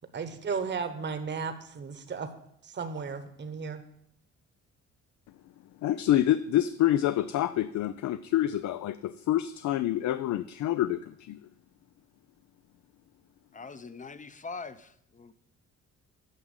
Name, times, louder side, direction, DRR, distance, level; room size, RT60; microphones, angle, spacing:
voice 1, 0.1-2.3 2.6-3.8, right 5 dB, 35° right, 9 dB, 1.1 m, -34 dB
voice 2, 5.8-11.4, left 12 dB, 70° left, 13 dB, 0.5 m, -27 dB
voice 3, 13.5-15.3, left 4 dB, 25° left, 13 dB, 0.7 m, -42 dB
9.6 x 6.1 x 8.0 m, 0.72 s
cardioid pair, 90°, 30 cm